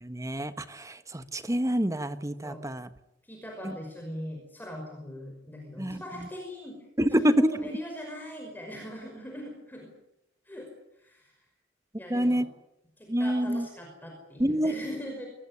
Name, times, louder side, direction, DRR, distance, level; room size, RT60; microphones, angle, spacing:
voice 1, 0.0-2.9 5.8-6.0 7.0-7.5 12.1-12.5 13.1-13.7 14.4-14.7, equal, 15° right, 11 dB, 1.3 m, -26 dB
voice 2, 3.2-6.8 7.2-9.9 10.5-10.7 11.0-11.3 12.0-12.4 13.0-15.2, equal, 10° left, 1 dB, 5.6 m, -41 dB
23.0 x 20.5 x 9.7 m, 0.85 s
head